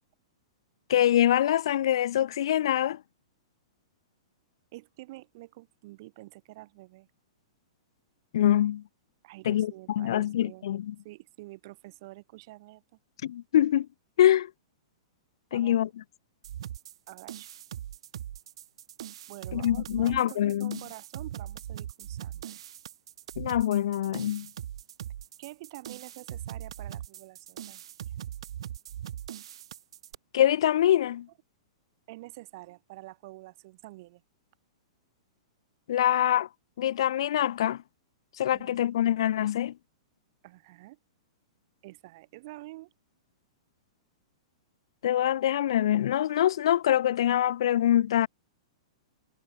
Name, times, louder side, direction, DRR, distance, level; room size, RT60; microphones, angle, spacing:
voice 1, 0.9-3.0 8.3-8.8 9.4-10.9 13.2-13.9 14.2-14.5 15.5-15.9 19.5-20.8 23.4-24.5 30.3-31.3 35.9-36.5 36.8-37.8 38.4-39.7 45.0-48.3, left 11 dB, 60° left, 0.6 m, -24 dB
voice 2, 4.7-7.1 9.2-10.7 11.0-12.8 15.5-15.8 17.1-17.5 19.3-22.6 25.4-27.8 32.1-34.2 38.5-38.8 40.4-41.0 41.8-42.9, right 20 dB, 35° right, 4.9 m, -47 dB
sound 1, 16.4-30.1, right 11 dB, 60° right, 3.2 m, -41 dB
supercardioid pair, 175°, 3 cm